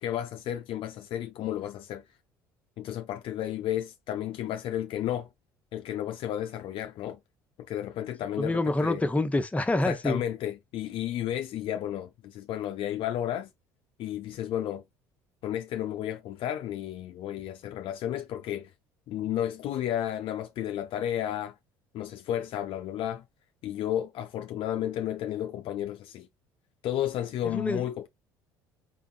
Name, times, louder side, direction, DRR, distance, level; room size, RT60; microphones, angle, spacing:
voice 1, 0.0-2.0 2.8-5.3 5.7-7.2 7.7-9.0 9.7-13.5 14.0-14.8 15.4-18.7 19.1-21.6 21.9-23.2 23.6-26.3 26.8-28.1, left 11 dB, 60° left, 0.7 m, -32 dB
voice 2, 8.4-10.2 27.4-27.8, left 2 dB, 15° left, 1.1 m, -27 dB
5.2 x 3.6 x 2.3 m
hypercardioid pair, 65°, 10 cm